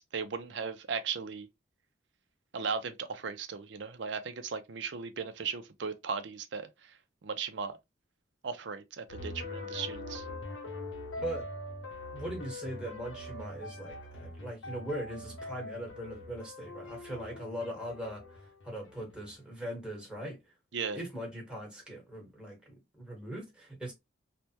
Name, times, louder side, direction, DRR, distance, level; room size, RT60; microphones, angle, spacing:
voice 1, 0.0-1.5 2.5-6.7 7.2-7.8 8.4-10.2 20.7-21.0, right 5 dB, 65° right, 0.5 m, -37 dB
sound 1, 9.1-19.3, left 2 dB, 75° left, 0.7 m, -43 dB
voice 2, 12.1-20.4 20.9-23.9, right 1 dB, 5° right, 1.2 m, -40 dB
3.3 x 2.1 x 2.8 m
head